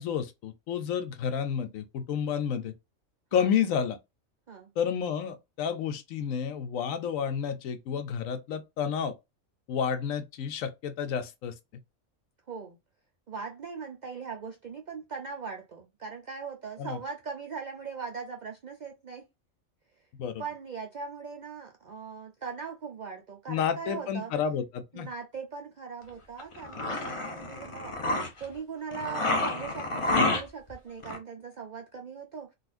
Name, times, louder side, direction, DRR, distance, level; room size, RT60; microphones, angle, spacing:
voice 1, 0.0-2.7 3.3-4.0 4.8-9.1 9.7-11.5 16.8-17.0 20.2-20.4 23.5-25.1, left 7 dB, 80° left, 1.0 m, -30 dB
voice 2, 12.5-12.8 13.3-19.3 20.4-24.3 24.9-32.5, right 5 dB, 75° right, 0.4 m, -40 dB
sound 1, 26.4-28.5 28.9-30.7 31.0-31.2, left 2 dB, 35° left, 0.5 m, -29 dB
4.0 x 2.4 x 2.5 m
omnidirectional pair, 1.4 m